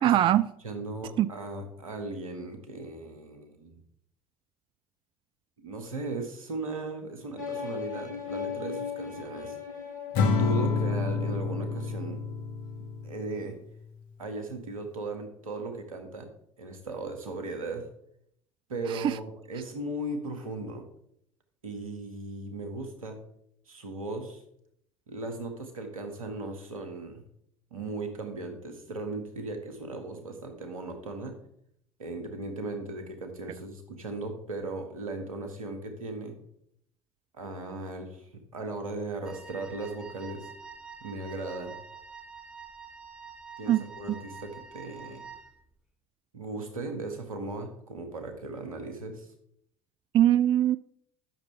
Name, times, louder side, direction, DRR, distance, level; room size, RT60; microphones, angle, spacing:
voice 1, 0.0-0.5 1.2-1.3 18.9-19.2 43.7-44.2 50.1-50.8, right 12 dB, 30° right, 0.4 m, -22 dB
voice 2, 0.6-3.8 5.6-9.6 10.2-12.2 13.0-13.6 14.2-16.3 16.6-17.9 18.7-20.9 21.6-23.2 23.7-24.4 25.1-27.3 27.7-31.4 32.0-36.4 37.3-40.5 41.0-41.8 43.6-45.2 46.3-49.3, right 2 dB, 80° right, 1.7 m, -37 dB
sound 1, 7.4-11.2, left 6 dB, 80° left, 2.0 m, -38 dB
Acoustic guitar / Strum, 10.1-13.5, left 4 dB, 55° left, 1.5 m, -28 dB
Wind instrument woodwind instrument, 39.3-45.6, right 5 dB, 5° right, 1.4 m, -46 dB
12.5 x 6.6 x 3.3 m
figure-of-eight pair, 65°, 17 cm